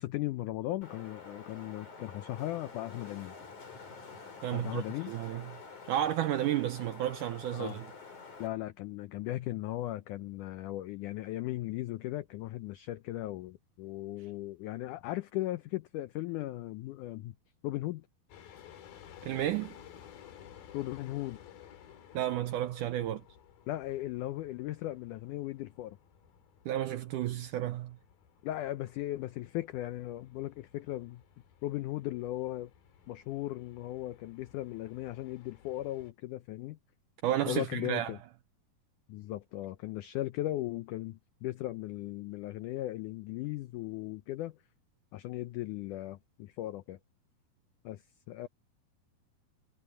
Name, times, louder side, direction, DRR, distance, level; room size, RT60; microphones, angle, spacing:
voice 1, 0.0-3.4 4.5-5.1 7.5-7.8 8.4-17.4 17.6-18.1 20.7-21.4 23.7-26.0 28.4-31.2 31.6-32.7 33.1-36.8 37.5-38.2 39.1-44.6 45.1-47.0 47.8-48.5, left 15 dB, 85° left, 1.8 m, -37 dB
Wind, 0.8-8.5, left 4 dB, 50° left, 7.1 m, -48 dB
voice 2, 4.4-5.5 5.9-7.9 19.2-19.8 22.1-23.2 26.7-28.0 37.2-38.1, right 12 dB, 80° right, 1.9 m, -32 dB
sound 1, 18.3-36.1, left 9 dB, 70° left, 3.8 m, -56 dB
omnidirectional pair, 4.4 m